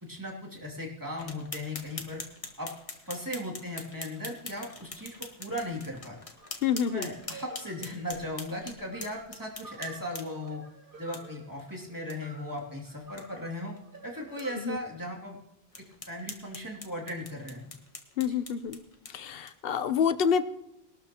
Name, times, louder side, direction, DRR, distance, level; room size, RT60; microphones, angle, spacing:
voice 1, 0.0-2.2 2.6-2.7 3.0-6.2 6.8-10.6 11.0-13.7 14.0-15.4 16.1-17.7, left 1 dB, 20° right, -2 dB, 2.6 m, -37 dB
sound 1, 1.2-10.5 11.1-11.2 11.6-11.7 12.1-12.2 12.5-12.6 13.0-13.2 13.8-13.9 14.4-14.5 15.0-15.1 15.7-19.8, left 3 dB, 35° left, 1.3 m, -44 dB
sound 2, 6.4-14.6, right 3 dB, 60° right, 2.4 m, -51 dB
voice 2, 6.6-7.1 14.6-14.8 18.2-18.8 19.1-20.4, left 7 dB, 70° left, 11 dB, 0.9 m, -27 dB
21.0 x 12.5 x 2.9 m, 0.85 s
omnidirectional pair, 1.0 m